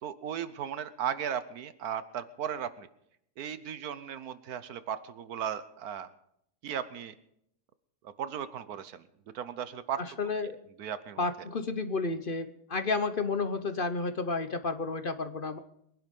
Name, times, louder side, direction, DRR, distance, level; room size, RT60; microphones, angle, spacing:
voice 1, 0.0-2.9 3.4-6.1 6.6-7.1 8.0-9.0 9.3-10.0 10.8-11.3, right 9 dB, 75° right, 14 dB, 1.3 m, -36 dB
voice 2, 10.0-10.6 11.2-15.6, left 3 dB, 45° left, 10 dB, 0.9 m, -31 dB
22.5 x 11.0 x 5.3 m, 0.74 s
omnidirectional pair, 1.6 m